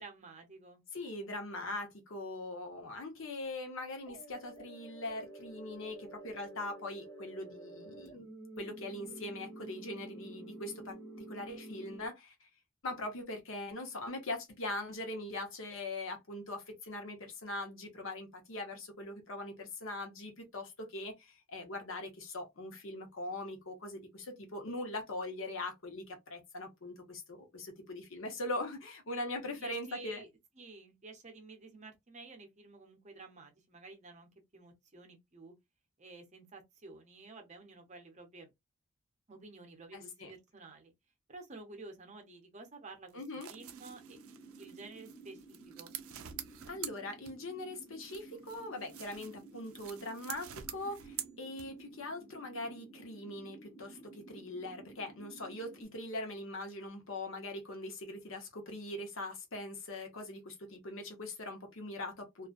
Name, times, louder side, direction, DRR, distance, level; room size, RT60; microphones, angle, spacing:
voice 1, 0.0-0.8 29.6-30.3 30.6-35.5 36.0-38.5 39.3-40.9 41.3-43.2 43.5-44.2 44.6-45.9, right 3 dB, 30° right, 0.7 m, -52 dB
voice 2, 0.9-8.3 8.6-11.0 11.3-12.5 12.8-30.2 39.9-40.3 43.1-43.5 46.7-62.5, left 2 dB, 60° left, 0.9 m, -41 dB
sound 1, 4.1-12.1, right 2 dB, 85° left, 1.1 m, -49 dB
sound 2, 43.1-47.6 48.0-52.0, right 11 dB, 65° right, 0.4 m, -47 dB
sound 3, 43.5-55.8, right 3 dB, 15° left, 0.7 m, -54 dB
2.4 x 2.1 x 2.4 m
head